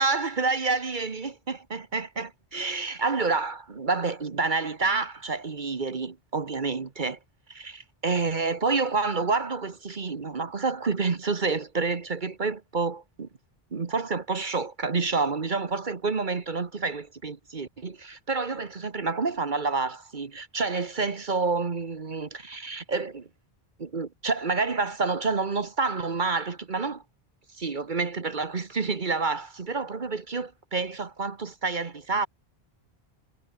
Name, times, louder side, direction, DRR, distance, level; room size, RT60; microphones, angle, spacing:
voice 1, 0.0-7.2 7.5-13.3 13.7-23.3 23.8-27.0 27.6-32.3, right 4 dB, 50° right, 1.4 m, -28 dB
omnidirectional pair, 1.1 m